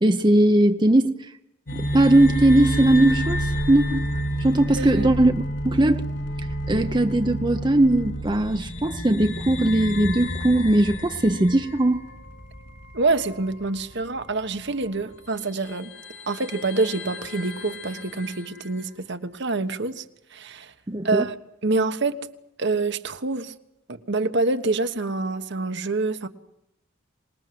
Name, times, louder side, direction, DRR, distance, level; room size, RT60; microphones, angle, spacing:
voice 1, 0.0-1.3 1.7-4.0 4.4-6.0 6.7-12.0 20.9-21.3, right 1 dB, 20° right, 0.8 m, -19 dB
sound 1, 1.7-13.6 13.9-14.0 15.0-15.1 15.6-18.7, equal, 65° left, 4.7 m, -30 dB
voice 2, 4.8-5.1 12.9-15.9 16.3-20.0 20.3-20.7 21.0-21.4 21.6-22.2 22.6-23.5 23.9-26.3, right 3 dB, 55° right, 1.3 m, -26 dB
26.0 x 20.0 x 7.8 m
head